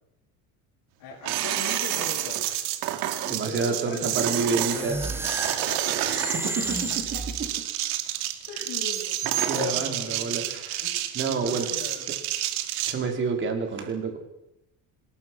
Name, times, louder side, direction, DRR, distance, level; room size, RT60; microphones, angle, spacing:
voice 1, 1.0-2.5 3.2-7.2 8.5-9.2 9.5-10.4 10.8-12.1, left 6 dB, 55° left, -1 dB, 6.1 m, -39 dB
sound 1, 1.2-12.9, right 13 dB, 80° right, 2.7 m, -29 dB
voice 2, 3.3-5.0 5.5-5.6 6.4-6.8 7.4-7.5 9.5-10.9 11.1-11.7 12.9-14.2, right 4 dB, 30° right, 4 dB, 4.3 m, -28 dB
sound 2, 4.5-7.8, right 2 dB, 5° right, 1.4 m, -33 dB
26.0 x 20.5 x 6.3 m, 0.90 s
cardioid pair, 175°, 37 cm